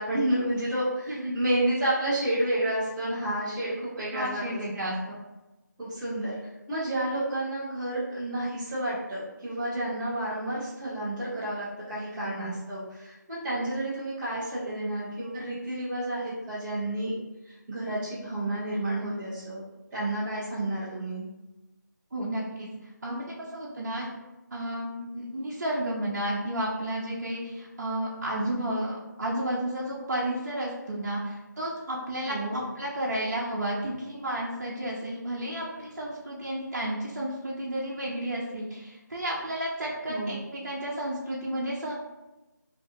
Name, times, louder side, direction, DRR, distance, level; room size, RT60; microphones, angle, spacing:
voice 1, 0.0-4.4 4.7-4.8 5.8-6.4 6.7-17.1 17.4-19.6 19.9-21.2 32.3-32.6 40.1-40.4, right 1 dB, 5° right, -13 dB, 0.4 m, -30 dB
voice 2, 4.1-5.2 12.2-12.5 22.1-22.7 23.0-24.1 24.5-41.9, right 1 dB, 55° right, -5 dB, 0.7 m, -32 dB
2.6 x 2.5 x 3.6 m, 1.0 s
figure-of-eight pair, 165°, 10 cm